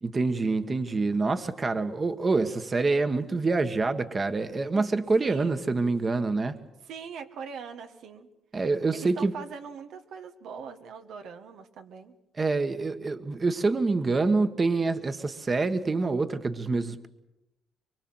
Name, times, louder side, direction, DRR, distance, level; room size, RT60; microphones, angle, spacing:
voice 1, 0.0-6.6 8.5-9.3 12.4-17.1, right 3 dB, 30° right, 9 dB, 1.4 m, -26 dB
voice 2, 5.2-5.7 6.8-8.3 8.9-12.1, right 6 dB, 80° right, 6 dB, 1.6 m, -42 dB
24.0 x 23.5 x 7.9 m, 0.91 s
cardioid pair, 90°, 0 cm